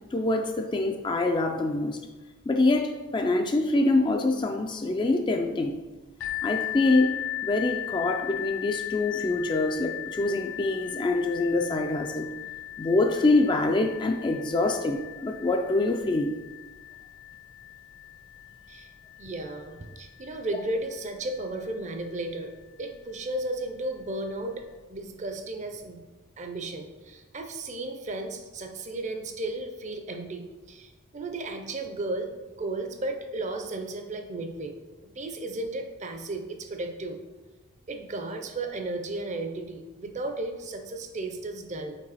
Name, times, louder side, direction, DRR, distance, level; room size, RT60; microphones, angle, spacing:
voice 1, 0.1-2.0 2.5-5.8 6.4-7.1 7.4-12.3 12.8-16.3, left 2 dB, 20° left, 4 dB, 0.3 m, -25 dB
sound 1, 6.2-21.7 22.5-22.6 23.2-23.3, left 13 dB, 70° left, 1.1 m, -38 dB
voice 2, 19.2-22.5 22.8-26.0 26.4-32.3 32.6-34.8 35.2-37.2 37.9-41.9, right 2 dB, 35° right, 5 dB, 0.5 m, -34 dB
5.3 x 4.8 x 4.1 m, 1.2 s
head